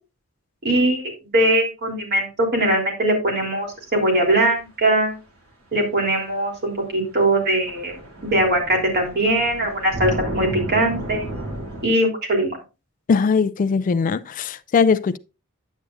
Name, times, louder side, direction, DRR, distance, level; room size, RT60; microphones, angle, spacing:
voice 1, 0.6-5.1 5.7-7.9 8.2-11.3 11.8-12.6, right 1 dB, 50° right, 3.3 m, -21 dB
sound 1, 5.7-5.8 7.0-7.1 7.3-11.8, right 1 dB, 90° right, 3.1 m, -32 dB
voice 2, 13.1-15.2, left 5 dB, 40° left, 0.3 m, -20 dB
9.9 x 8.3 x 2.5 m
head